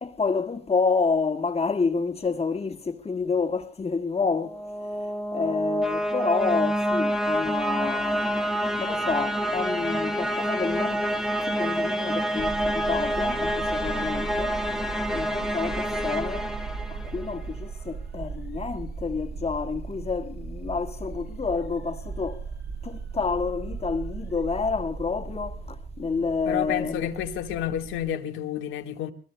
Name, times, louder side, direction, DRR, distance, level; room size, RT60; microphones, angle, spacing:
voice 1, 0.0-14.6 15.1-16.5 16.9-22.5 22.8-27.1, left 4 dB, 30° left, 1.8 m, -29 dB
sound 1, 4.4-17.4, equal, ahead, 1.6 m, -27 dB
sound 2, 12.4-28.1, right 5 dB, 55° right, 5.4 m, -37 dB
voice 2, 26.5-29.1, left 10 dB, 90° left, 1.6 m, -30 dB
25.5 x 21.0 x 2.2 m
cardioid pair, 90°, 20 cm